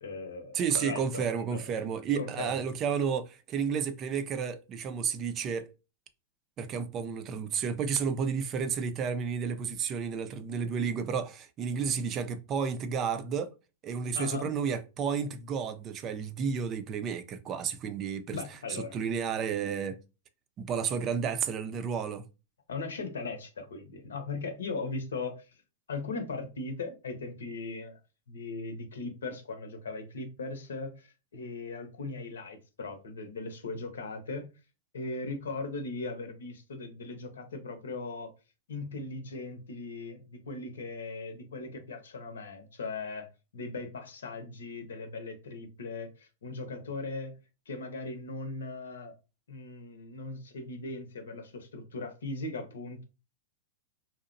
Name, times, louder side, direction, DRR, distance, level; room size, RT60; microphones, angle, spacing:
voice 1, 0.0-1.6 2.2-2.6 14.1-14.5 18.3-19.0 22.7-25.5 25.9-28.0 28.3-34.5 34.9-38.3 38.7-43.3 43.5-47.3 47.7-49.1 49.5-53.0, left 3 dB, 85° left, 0.8 m, -38 dB
voice 2, 0.5-5.7 6.6-13.5 13.8-18.4 18.9-20.0 20.6-22.2, right 6 dB, 35° right, 0.4 m, -31 dB
2.8 x 2.0 x 2.5 m
hypercardioid pair, 115°, 0 cm